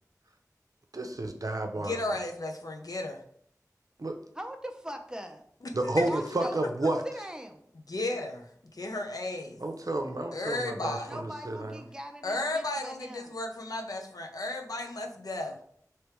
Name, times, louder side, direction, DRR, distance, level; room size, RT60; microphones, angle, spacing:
voice 1, 0.9-2.0 4.0-4.2 5.7-7.0 9.6-11.8, right 2 dB, 65° right, 4 dB, 0.6 m, -31 dB
voice 2, 1.8-3.2 6.0-6.1 7.9-9.6 10.3-11.1 12.2-15.6, left 2 dB, 70° left, 3 dB, 0.6 m, -34 dB
voice 3, 4.3-5.4 5.9-6.7 7.0-7.7 11.1-13.3, right 1 dB, 10° right, 5 dB, 0.6 m, -41 dB
3.3 x 3.0 x 4.5 m, 0.64 s
wide cardioid pair, 50°, 6 cm